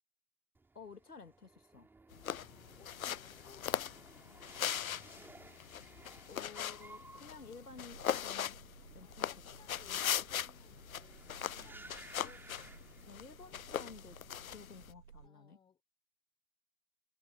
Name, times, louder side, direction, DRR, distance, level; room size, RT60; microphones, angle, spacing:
sound 1, 0.5-13.6 13.9-14.5, right 3 dB, 5° right, 2.9 m, -58 dB
voice 1, 0.7-1.9 6.3-8.6 8.9-9.3 9.9-10.0 13.0-14.2 14.5-15.6, left 4 dB, 90° left, 2.4 m, -53 dB
sound 2, 2.1-14.9, left 10 dB, 65° left, 0.7 m, -40 dB
voice 2, 2.3-3.8 9.0-12.5 14.6-14.7 15.1-15.8, left 7 dB, 10° left, 4.2 m, -64 dB
sound 3, 7.3-15.3, right 7 dB, 60° right, 3.5 m, -58 dB
figure-of-eight pair, 130°, 45 cm